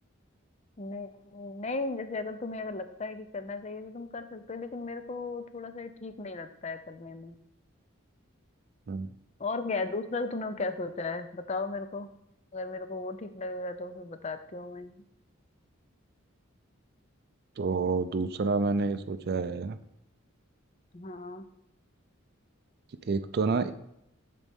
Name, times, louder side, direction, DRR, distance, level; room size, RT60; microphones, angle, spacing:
voice 1, 0.8-7.4 9.4-12.1 12.5-14.9 20.9-21.4, left 3 dB, 30° left, 10 dB, 0.5 m, -36 dB
voice 2, 17.6-19.8 23.1-23.7, right 4 dB, 50° right, 10 dB, 0.4 m, -28 dB
12.5 x 4.2 x 3.5 m, 0.79 s
head